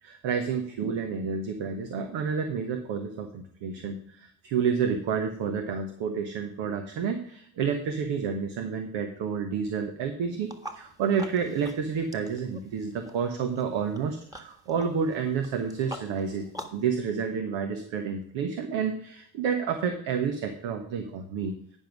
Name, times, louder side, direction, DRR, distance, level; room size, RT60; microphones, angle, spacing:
voice 1, 0.0-21.6, right 6 dB, 65° right, 6 dB, 1.3 m, -30 dB
sound 1, 10.4-16.9, equal, 5° right, 1.6 m, -46 dB
10.0 x 5.5 x 6.1 m, 0.64 s
hypercardioid pair, 55°, 49 cm